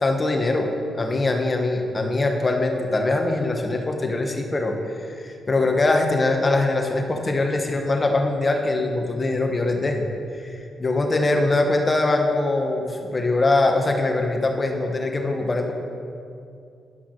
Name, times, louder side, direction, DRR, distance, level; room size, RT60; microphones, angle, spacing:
voice 1, 0.0-0.7 1.0-4.8 5.1-10.0 10.4-15.7, left 2 dB, 35° left, 3 dB, 1.4 m, -22 dB
11.5 x 5.7 x 6.6 m, 2.5 s
cardioid pair, 65°, 0 cm